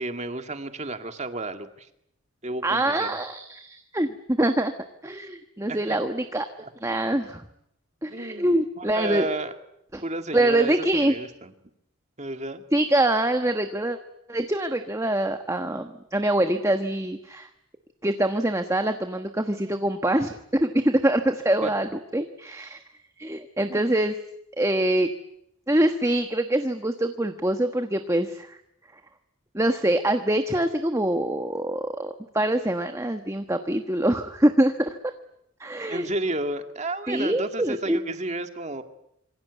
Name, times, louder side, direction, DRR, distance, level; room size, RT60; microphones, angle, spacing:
voice 1, 0.0-1.9 2.4-3.2 5.7-5.8 8.1-9.5 10.0-11.5 12.2-12.6 21.6-21.7 23.7-23.9 35.9-38.8, right 2 dB, 35° right, 7 dB, 2.1 m, -32 dB
voice 2, 2.6-4.7 5.0-6.5 6.8-7.4 8.0-9.3 9.9-10.0 10.3-11.1 12.7-14.0 14.3-17.5 18.0-22.8 23.2-24.1 24.6-25.1 25.7-28.6 29.5-35.0 35.6-36.1 37.1-38.0, right 1 dB, 15° right, 7 dB, 1.3 m, -24 dB
26.5 x 25.0 x 8.2 m, 0.80 s
head